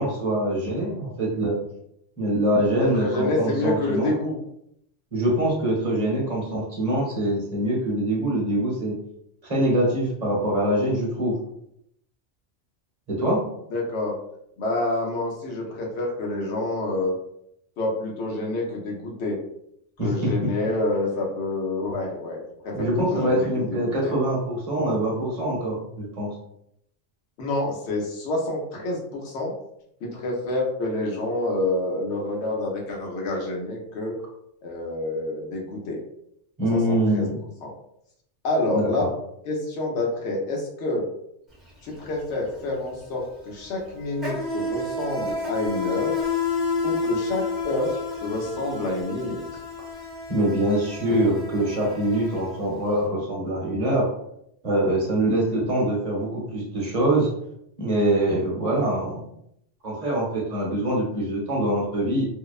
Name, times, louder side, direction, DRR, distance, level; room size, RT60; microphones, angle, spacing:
voice 1, 0.0-1.6 2.2-4.1 5.1-9.0 9.4-11.4 13.1-13.4 20.0-20.3 22.7-26.3 36.6-37.4 38.7-39.1 50.3-54.1 54.6-57.3 57.8-59.3 59.8-62.3, right 1 dB, 40° right, -4 dB, 0.8 m, -24 dB
voice 2, 2.8-4.4 13.7-14.1 14.6-17.1 17.8-19.4 20.0-24.1 27.4-29.5 30.0-34.2 34.6-36.0 36.7-37.2 37.6-37.7 38.4-39.1 39.4-41.1 41.8-46.1 46.8-47.9 48.2-49.4, left 2 dB, 70° left, -1 dB, 1.0 m, -28 dB
Insect, 41.5-41.7 42.0-53.0, left 4 dB, ahead, 0.7 m, -30 dB
2.7 x 2.0 x 2.3 m, 0.74 s
omnidirectional pair, 1.3 m